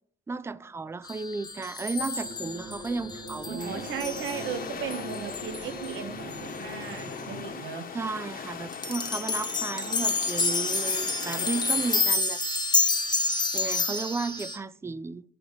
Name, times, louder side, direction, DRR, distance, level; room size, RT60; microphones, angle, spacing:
voice 1, 0.3-3.9 7.9-12.4 13.5-15.2, right 4 dB, 15° right, 0.3 m, -34 dB
sound 1, 1.1-6.0 6.3-6.4 6.9-7.0 8.7-14.6, left 3 dB, 20° left, 1.0 m, -29 dB
sound 2, 2.2-7.5, equal, 60° right, 3.2 m, -42 dB
voice 2, 3.4-7.8, right 7 dB, 80° right, 1.2 m, -36 dB
sound 3, 3.6-12.0, left 6 dB, 45° left, 1.1 m, -40 dB
8.7 x 3.4 x 6.8 m
cardioid pair, 90°, 20 cm